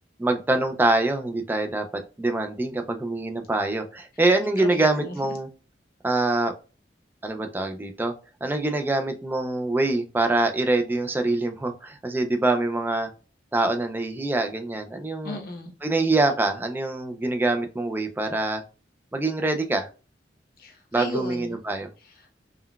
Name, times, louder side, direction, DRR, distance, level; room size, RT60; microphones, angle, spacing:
voice 1, 0.2-1.8 2.2-5.5 6.0-6.5 7.2-8.1 8.4-13.1 13.5-15.4 15.8-18.6 19.1-19.9 20.9-21.9, right 2 dB, 10° right, 0.3 m, -24 dB
voice 2, 4.6-5.2 15.2-15.7 20.6-21.6 22.0-22.3, left 1 dB, 55° left, 0.8 m, -35 dB
3.7 x 2.1 x 2.3 m
head